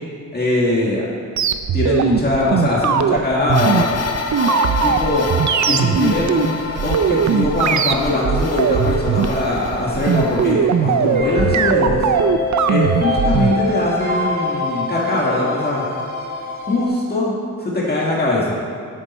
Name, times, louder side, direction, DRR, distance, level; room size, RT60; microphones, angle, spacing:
voice 1, 0.3-1.0 1.7-3.9 4.8-5.3 5.7-12.1 12.6-15.9 16.7-17.3 17.6-18.6, left 2 dB, 30° left, -5 dB, 1.8 m, -21 dB
sound 1, 1.4-13.5, right 7 dB, 65° right, 0.5 m, -19 dB
sound 2, 3.5-10.5, left 5 dB, 50° left, 0.7 m, -29 dB
sound 3, 4.4-16.9, left 2 dB, 30° right, 1.8 m, -27 dB
12.0 x 8.4 x 4.3 m, 2.3 s
wide cardioid pair, 170°, 31 cm